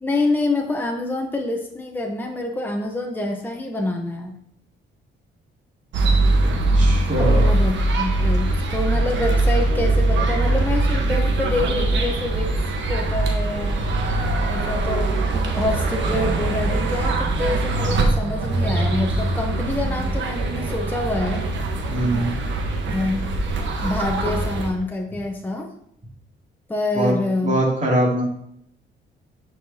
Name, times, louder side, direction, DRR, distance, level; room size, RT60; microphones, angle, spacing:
voice 1, 0.0-4.3 7.2-12.5 12.9-13.8 14.5-21.4 22.9-23.3 23.8-25.7 26.7-27.6, left 2 dB, 10° left, 1 dB, 0.9 m, -26 dB
sound 1, 5.9-24.7, right 2 dB, 70° right, 1.2 m, -22 dB
voice 2, 6.8-7.5 21.9-22.3 27.0-27.1 27.4-28.3, right 1 dB, 35° right, -3 dB, 2.7 m, -22 dB
9.9 x 4.8 x 2.8 m, 0.72 s
cardioid pair, 90°, 20 cm